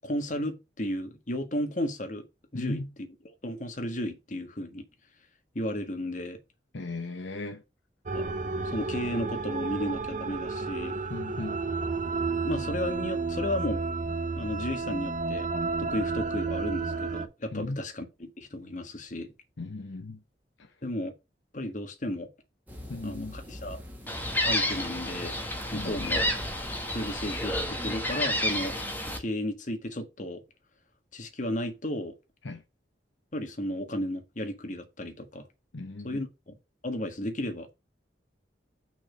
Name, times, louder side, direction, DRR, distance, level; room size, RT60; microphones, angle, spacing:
voice 1, 0.0-2.2 2.5-2.8 3.4-4.8 5.5-6.4 8.1-8.3 8.6-11.0 12.4-13.8 14.3-15.5 15.8-19.3 20.8-21.1 21.5-22.3 23.0-23.8 24.4-25.4 25.7-26.3 26.9-28.7 29.2-30.4 31.1-32.1 33.3-35.4 36.0-36.6 36.8-37.7, left 1 dB, 40° left, 1.6 m, -33 dB
voice 2, 2.5-2.9 6.7-7.6 11.1-11.6 17.5-17.8 19.6-20.2 20.6-20.7 22.9-23.4 25.7-26.1 32.4-32.6 35.7-36.2, left 2 dB, 75° left, 0.9 m, -37 dB
sound 1, 8.1-17.3, right 4 dB, 40° right, 0.7 m, -31 dB
sound 2, 22.7-27.7, left 1 dB, 10° right, 1.7 m, -45 dB
Gull seagull, 24.1-29.2, left 1 dB, 10° left, 1.2 m, -30 dB
6.1 x 4.2 x 6.1 m
head